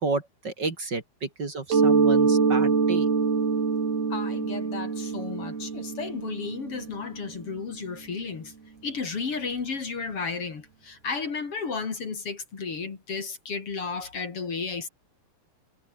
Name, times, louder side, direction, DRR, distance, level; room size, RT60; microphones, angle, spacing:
voice 1, 0.0-3.1, right 3 dB, 30° right, 2.4 m, -31 dB
Mallet percussion, 1.7-7.2, right 5 dB, 55° right, 7.9 m, -24 dB
voice 2, 4.1-8.5 8.8-14.9, left 5 dB, 35° left, 2.8 m, -33 dB
omnidirectional pair, 5.5 m